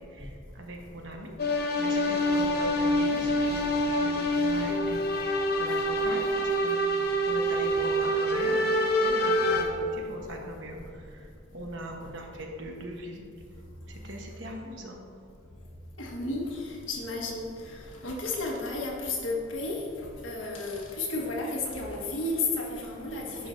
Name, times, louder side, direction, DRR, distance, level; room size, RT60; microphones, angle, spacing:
voice 1, 0.6-10.8 11.1-11.3 11.5-13.2 13.9-15.0 23.3-23.5, right 1 dB, 65° right, 1 dB, 1.0 m, -40 dB
sound 1, 1.4-9.6, equal, 50° left, 0.8 m, -26 dB
voice 2, 16.0-23.5, left 2 dB, 75° left, -2 dB, 1.4 m, -33 dB
10.5 x 5.6 x 2.6 m, 2.5 s
head